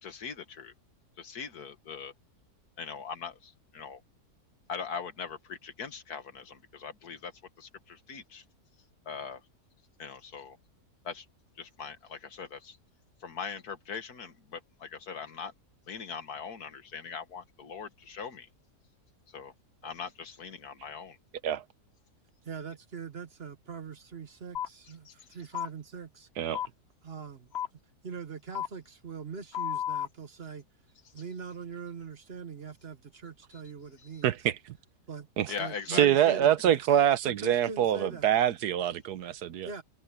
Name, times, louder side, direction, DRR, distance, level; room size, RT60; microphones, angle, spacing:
voice 1, 0.0-0.7 1.2-2.1 2.8-4.0 4.7-7.3 7.6-8.4 9.1-9.4 10.0-10.6 11.0-11.3 11.6-12.8 13.2-15.5 15.9-18.5 19.3-19.5 19.8-21.2 25.1-25.3 31.1-31.2 33.5-33.6 34.0-34.2 35.5-36.1, left 6 dB, 75° left, 2.0 m, -41 dB
voice 2, 22.4-26.3 27.0-27.5 28.0-30.6 31.1-34.4 35.1-35.3 35.6-36.8 37.2-38.3 39.6-39.8, right 5 dB, 40° right, 1.3 m, -42 dB
sound 1, 24.5-24.7 25.5-25.7 26.5-26.7 27.5-27.7 28.5-28.7 29.5-30.1, left 10 dB, 45° left, 1.2 m, -32 dB
voice 3, 34.2-34.6 35.4-35.5 35.9-39.7, right 10 dB, 85° right, 1.4 m, -25 dB
omnidirectional pair, 1.7 m